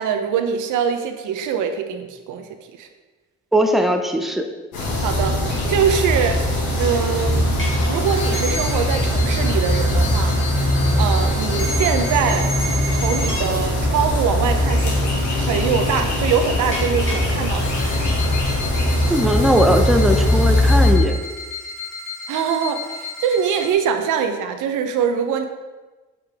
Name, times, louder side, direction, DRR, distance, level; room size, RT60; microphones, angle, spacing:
voice 1, 0.0-2.5 2.8-2.9 5.0-6.4 6.8-12.5 13.0-15.0 15.4-17.7 22.3-25.5, right 7 dB, 85° right, 7 dB, 0.7 m, -23 dB
voice 2, 3.5-4.4 19.1-21.1, equal, ahead, 4 dB, 0.7 m, -19 dB
sound 1, 4.7-20.9, left 1 dB, 85° left, 2.2 m, -20 dB
sound 2, 7.5-7.7 8.0-13.4 16.7-17.2 17.5-23.7, left 2 dB, 40° left, 1.9 m, -32 dB
7.5 x 5.4 x 3.5 m, 1.2 s
cardioid pair, 90°, 30 cm